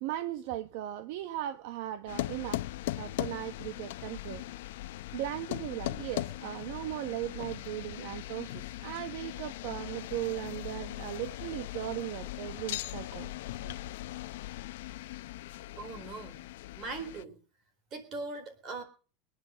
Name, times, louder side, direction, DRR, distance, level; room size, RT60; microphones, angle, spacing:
voice 1, 0.0-2.6 3.0-4.4 5.1-13.3 13.6-13.7, right 14 dB, 50° right, 1.0 m, -37 dB
sound 1, 2.1-17.2, left 16 dB, 65° left, 0.8 m, -39 dB
voice 2, 15.8-16.4 16.8-17.4 17.9-18.8, right 3 dB, 25° right, 4.0 m, -40 dB
23.0 x 10.0 x 6.3 m
supercardioid pair, 180°, 0 cm